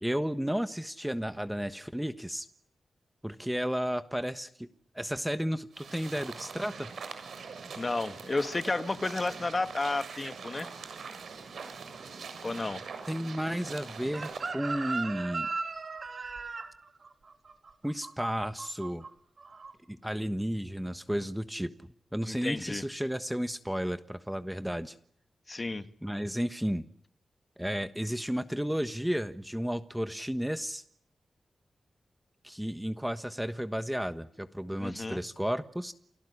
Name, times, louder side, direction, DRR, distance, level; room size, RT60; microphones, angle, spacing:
voice 1, 0.0-2.5 3.2-4.7 4.9-6.9 13.0-15.5 17.8-19.1 19.9-25.0 26.0-26.9 27.6-30.8 32.4-35.9, equal, 5° right, 11 dB, 1.3 m, -33 dB
sound 1, 5.7-14.5, right 5 dB, 85° right, 7.0 m, -43 dB
voice 2, 7.8-10.7 12.4-12.8 22.2-22.8 25.5-25.9 34.8-35.2, left 3 dB, 30° left, 11 dB, 1.8 m, -32 dB
Chicken rooster, 14.1-19.1 19.4-19.7, right 4 dB, 50° right, 3.8 m, -37 dB
29.0 x 18.5 x 9.9 m, 0.64 s
wide cardioid pair, 115°, 0 cm